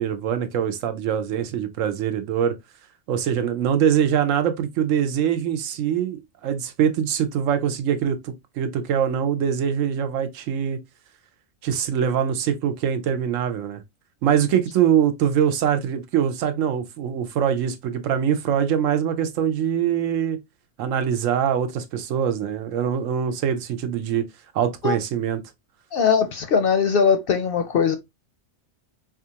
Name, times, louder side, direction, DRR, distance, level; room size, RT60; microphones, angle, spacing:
voice 1, 0.0-2.6 3.1-10.8 11.6-13.8 14.2-20.4 20.8-24.3 24.5-25.4, right 8 dB, 85° right, 1.0 m, -23 dB
voice 2, 25.9-28.0, left 6 dB, 60° left, 0.6 m, -20 dB
4.2 x 2.4 x 2.7 m
omnidirectional pair, 1.3 m